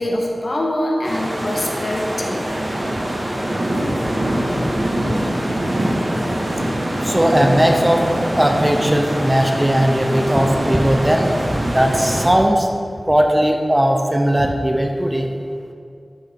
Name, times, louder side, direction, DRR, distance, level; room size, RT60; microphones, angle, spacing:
voice 1, 0.0-2.5, left 1 dB, 60° left, -1 dB, 1.8 m, -23 dB
sound 1, 1.0-12.3, right 1 dB, 60° right, 2.1 m, -23 dB
voice 2, 7.0-8.0 8.3-12.7 13.1-15.3, equal, 15° right, 3 dB, 0.9 m, -18 dB
12.0 x 6.5 x 4.8 m, 2.3 s
wide cardioid pair, 65°, 0 cm